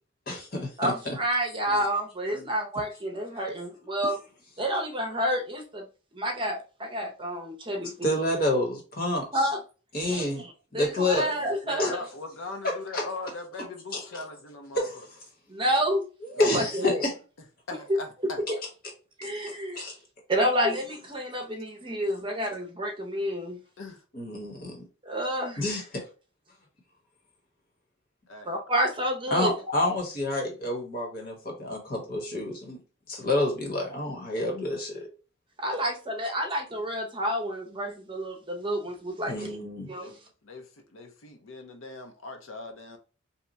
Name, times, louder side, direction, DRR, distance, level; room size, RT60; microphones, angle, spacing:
voice 1, 0.3-1.2 8.0-9.4 9.9-10.4 10.7-11.3 11.8-11.9 12.9-13.0 13.9-14.0 14.7-15.0 16.3-17.1 19.2-19.3 19.7-19.9 24.1-24.8 25.6-26.0 29.3-32.8 33.1-35.1 39.3-39.9, left 1 dB, 50° left, 1.2 m, -28 dB
voice 2, 0.8-4.2 4.6-5.8 6.1-8.2 9.3-9.6 10.1-11.8 15.5-16.1 16.4-17.0 19.2-19.8 20.3-23.6 25.0-25.6 28.5-29.5 35.6-39.6 39.9-40.1, equal, 25° right, 0.7 m, -29 dB
voice 3, 11.1-14.9 16.4-16.5 16.8-17.0 17.7-18.4 23.8-24.0 28.3-28.6 40.0-40.1 40.4-43.0, left 2 dB, 85° left, 0.7 m, -40 dB
2.9 x 2.2 x 3.9 m
head